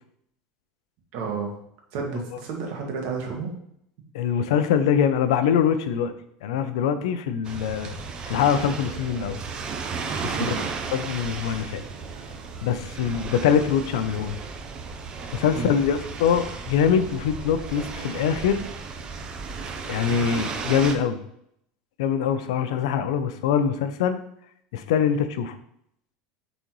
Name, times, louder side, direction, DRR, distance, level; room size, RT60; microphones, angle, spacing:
voice 1, 1.1-1.5 1.9-3.5 10.3-10.6 15.5-15.7, right 5 dB, 60° right, 1 dB, 1.6 m, -31 dB
voice 2, 4.1-6.1 6.4-7.9 8.3-9.4 10.2-10.5 10.9-11.8 12.6-14.3 15.3-18.6 19.9-21.2 22.0-24.2 24.7-25.6, left 8 dB, 85° left, 11 dB, 0.6 m, -23 dB
sound 1, 7.4-21.0, right 5 dB, 30° right, 0.6 m, -34 dB
7.6 x 4.0 x 3.1 m, 0.73 s
supercardioid pair, 140°, 3 cm